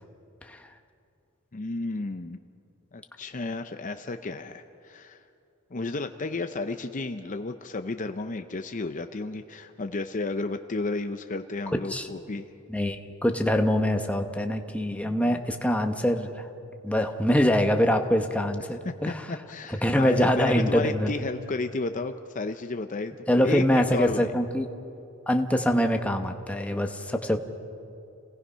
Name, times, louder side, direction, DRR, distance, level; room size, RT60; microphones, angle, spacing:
voice 1, 1.5-2.4 2.9-5.2 5.7-12.5 18.8-24.3, left 3 dB, 35° left, 7 dB, 0.6 m, -32 dB
voice 2, 12.7-16.5 16.8-19.2 19.8-21.1 23.3-24.7 25.3-27.4, equal, 5° left, 4 dB, 1.1 m, -24 dB
29.0 x 18.5 x 5.6 m, 2.6 s
head